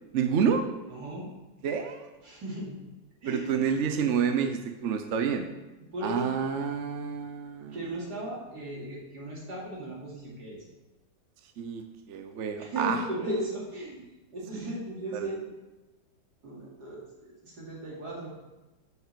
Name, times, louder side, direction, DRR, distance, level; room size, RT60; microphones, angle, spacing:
voice 1, 0.1-0.6 1.6-2.1 3.3-5.5 6.0-7.8 11.6-13.0 15.1-15.3, right 7 dB, 55° right, 7 dB, 0.9 m, -28 dB
voice 2, 0.8-1.3 2.2-2.8 3.2-3.7 5.8-6.3 7.7-10.6 12.6-14.1 14.3-15.5 16.4-18.3, right 1 dB, 70° right, -4 dB, 3.1 m, -36 dB
7.5 x 6.7 x 6.8 m, 1.1 s
omnidirectional pair, 1.8 m